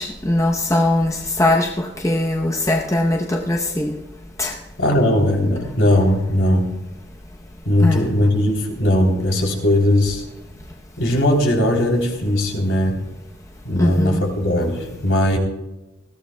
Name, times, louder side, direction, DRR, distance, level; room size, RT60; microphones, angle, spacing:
voice 1, 0.0-4.0 4.4-4.6 7.8-8.0 13.8-14.2, left 1 dB, 15° left, 0.8 m, -20 dB
voice 2, 4.8-6.7 7.6-10.2 11.0-13.0 13.6-15.4, left 1 dB, 60° left, 3.4 m, -18 dB
20.0 x 15.5 x 2.3 m
head